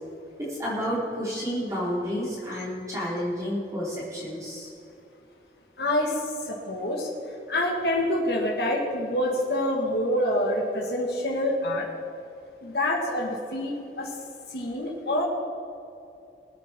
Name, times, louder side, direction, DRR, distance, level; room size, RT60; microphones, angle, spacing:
voice 1, 0.5-4.7, equal, 20° right, -8 dB, 3.7 m, -30 dB
voice 2, 5.8-6.2 6.4-7.1 7.5-11.9 12.6-14.1 14.5-15.2, left 1 dB, 70° left, -1 dB, 2.0 m, -26 dB
21.0 x 8.4 x 4.5 m, 2.7 s
head